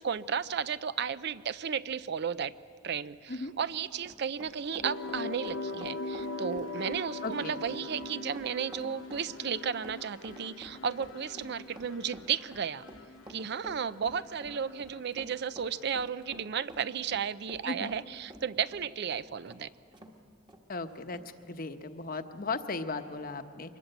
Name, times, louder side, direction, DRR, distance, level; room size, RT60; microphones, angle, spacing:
voice 1, 0.0-2.5 2.8-12.8 13.3-19.7, right 7 dB, 55° right, 16 dB, 0.5 m, -34 dB
Run, 3.7-20.1 20.5-20.6 21.1-21.3, right 1 dB, 25° right, 1.4 m, -51 dB
sound 1, 4.8-14.0 14.3-14.9, left 2 dB, 80° left, 0.9 m, -41 dB
voice 2, 7.2-7.5 17.7-17.9 20.7-21.2 21.5-23.8, left 3 dB, 45° left, 8 dB, 1.0 m, -36 dB
24.0 x 20.5 x 8.0 m, 2.6 s
head